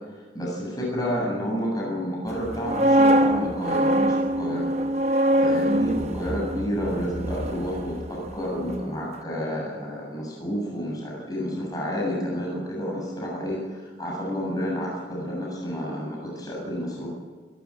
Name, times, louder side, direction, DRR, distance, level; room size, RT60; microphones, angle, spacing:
voice 1, 0.3-4.7 5.0-17.1, equal, 20° left, -3 dB, 7.6 m, -30 dB
sound 1, 2.4-8.4 8.7-8.9, right 1 dB, 40° right, 0.9 m, -23 dB
28.5 x 13.0 x 8.7 m, 1.5 s
head